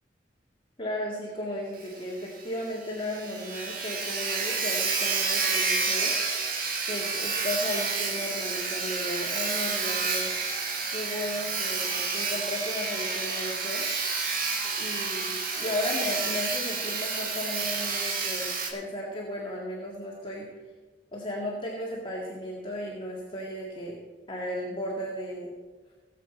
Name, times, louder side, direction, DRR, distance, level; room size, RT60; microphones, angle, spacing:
voice 1, 0.8-6.1 6.9-10.3 10.9-13.9 14.6-20.5 21.1-24.0 24.3-25.5, left 1 dB, 30° left, -4 dB, 2.0 m, -35 dB
Sawing, 1.8-1.9 2.2-2.3 2.7-2.8 3.0-18.7, right 4 dB, 55° right, 1.7 m, -29 dB
17.5 x 7.7 x 4.4 m, 1.3 s
head